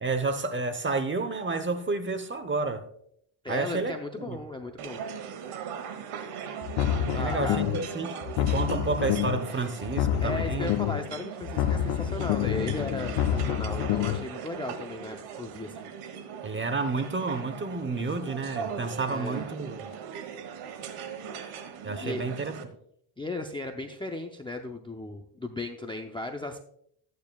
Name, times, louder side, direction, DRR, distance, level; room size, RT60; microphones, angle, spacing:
voice 1, 0.0-2.8 3.5-4.4 7.1-10.7 16.4-19.9 21.8-22.6, right 3 dB, 25° right, 0.9 m, -30 dB
voice 2, 3.4-5.0 7.1-7.7 10.2-15.9 19.1-19.5 22.0-22.3 23.2-26.6, left 2 dB, 10° left, 0.5 m, -36 dB
sound 1, 4.8-22.6, right 7 dB, 85° right, 1.5 m, -40 dB
sound 2, 6.6-7.9 8.2-9.5 9.8-11.1 11.4-14.2, left 10 dB, 85° left, 0.7 m, -28 dB
14.0 x 9.5 x 2.3 m
cardioid pair, 120°, 49 cm